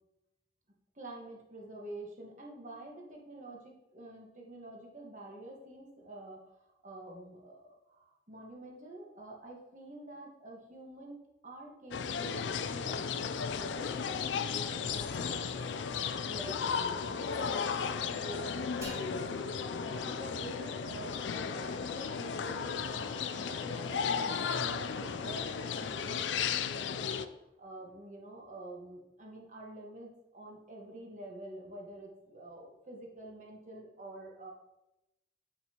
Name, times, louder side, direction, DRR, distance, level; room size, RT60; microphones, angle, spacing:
voice 1, 0.9-27.1 27.6-34.5, right 1 dB, 40° right, -1 dB, 1.4 m, -48 dB
sound 1, 11.9-27.3, left 6 dB, 85° left, 0.4 m, -35 dB
sound 2, 13.6-27.3, right 1 dB, 85° right, 1.2 m, -50 dB
sound 3, 18.8-22.4, left 2 dB, 15° right, 1.5 m, -49 dB
8.3 x 6.8 x 2.9 m, 0.94 s
head